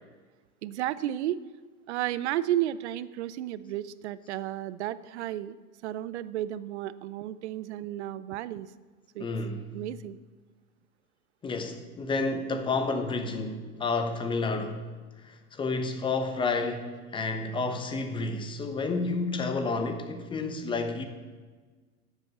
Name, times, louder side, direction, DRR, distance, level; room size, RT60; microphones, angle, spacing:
voice 1, 0.6-1.4 1.9-5.6 5.8-8.7 9.1-9.3 9.7-10.2, right 13 dB, 50° right, 17 dB, 0.7 m, -32 dB
voice 2, 9.2-9.7 11.4-14.8 15.2-21.1, left 3 dB, 10° left, 7 dB, 1.0 m, -30 dB
11.5 x 8.3 x 7.2 m, 1.4 s
hypercardioid pair, 130°, 45 cm